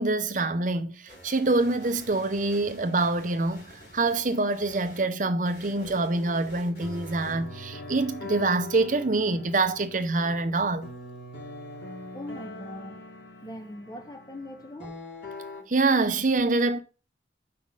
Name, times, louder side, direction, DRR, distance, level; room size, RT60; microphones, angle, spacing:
voice 1, 0.0-10.9 15.7-16.8, right 3 dB, 45° right, 0.8 m, -25 dB
sound 1, 1.1-5.0 5.4-8.0, equal, 65° left, 5.0 m, -49 dB
sound 2, 5.7-15.6, left 1 dB, 85° left, 2.9 m, -42 dB
voice 2, 12.1-13.0 13.4-15.0, left 1 dB, 20° left, 0.8 m, -41 dB
6.2 x 5.7 x 5.5 m
head